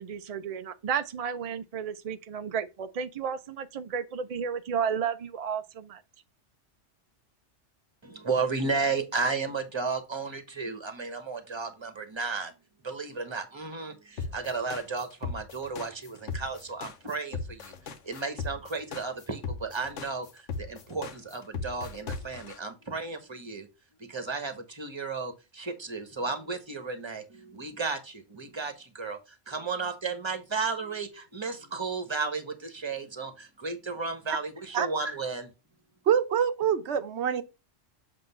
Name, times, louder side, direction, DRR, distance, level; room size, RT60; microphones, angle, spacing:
voice 1, 0.0-6.0, right 7 dB, 50° right, 0.4 m, -32 dB
voice 2, 8.0-12.5 12.8-23.7 24.0-35.5, right 4 dB, 25° right, 1.2 m, -34 dB
sound 1, 14.2-22.6, left 4 dB, 75° left, 1.2 m, -36 dB
voice 3, 36.1-37.4, right 8 dB, 70° right, 1.0 m, -25 dB
7.8 x 3.0 x 5.4 m
omnidirectional pair, 1.2 m